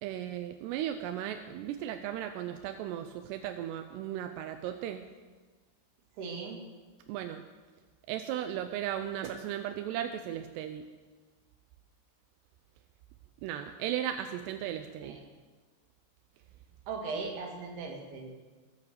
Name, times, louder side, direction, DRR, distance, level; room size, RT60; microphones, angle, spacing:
voice 1, 0.0-5.1 7.1-7.4 8.1-10.8 13.4-15.2, right 11 dB, 80° right, 7 dB, 2.6 m, -36 dB
voice 2, 6.2-6.6 15.0-15.2 16.9-18.5, right 4 dB, 65° right, 1 dB, 3.9 m, -39 dB
21.5 x 8.5 x 6.7 m, 1.4 s
omnidirectional pair, 5.3 m